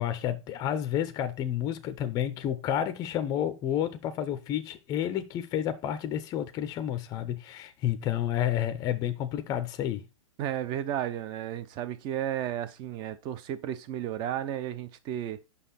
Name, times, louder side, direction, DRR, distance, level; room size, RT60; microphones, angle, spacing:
voice 1, 0.0-10.1, left 10 dB, 20° left, 0.6 m, -30 dB
voice 2, 10.4-15.4, right 11 dB, 30° right, 0.6 m, -33 dB
5.6 x 5.5 x 4.1 m
hypercardioid pair, 140°, 17 cm